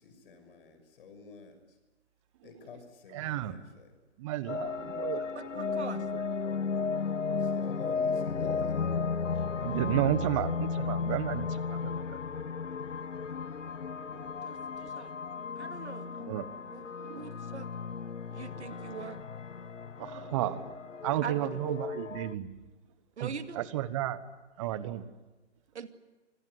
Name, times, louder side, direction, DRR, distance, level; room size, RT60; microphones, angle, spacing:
voice 1, 0.0-1.5 2.4-3.9 7.4-8.9, left 5 dB, 50° left, 7 dB, 6.2 m, -48 dB
voice 2, 3.1-3.6 4.2-5.3 5.8-6.2 7.2-7.4 9.6-12.2 14.1-14.3 16.0-16.5 17.0-17.4 18.6-19.0 20.0-20.7 21.0-22.5 23.2-24.2 24.6-25.0, right 13 dB, 25° right, 15 dB, 1.3 m, -33 dB
sound 1, 4.5-22.3, left 5 dB, 85° left, 1.0 m, -34 dB
voice 3, 5.4-6.0 14.5-15.2 15.6-16.1 16.7-16.9 17.2-17.7 18.3-19.2 21.2-21.8 23.2-23.7 25.7-25.9, right 6 dB, 65° right, 9 dB, 2.4 m, -42 dB
26.0 x 20.0 x 9.6 m, 1.2 s
figure-of-eight pair, 140°, 36 cm